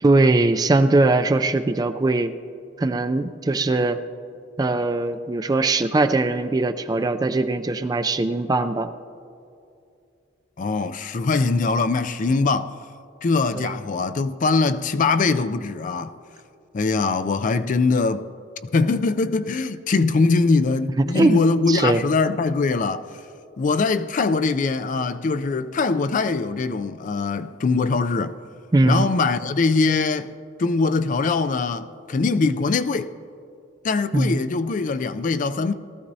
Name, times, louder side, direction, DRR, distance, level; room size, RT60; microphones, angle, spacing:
voice 1, 0.0-2.3 2.8-4.0 4.6-8.9 13.5-13.7 21.0-21.4 21.7-22.0 28.7-29.1 34.1-34.4, right 2 dB, 20° right, 0.4 m, -20 dB
voice 2, 10.6-12.7 13.2-16.2 16.7-18.3 18.7-23.1 23.6-28.3 28.8-30.3 30.6-33.1 33.8-35.7, left 4 dB, 45° left, 0.4 m, -22 dB
18.5 x 14.0 x 2.7 m
head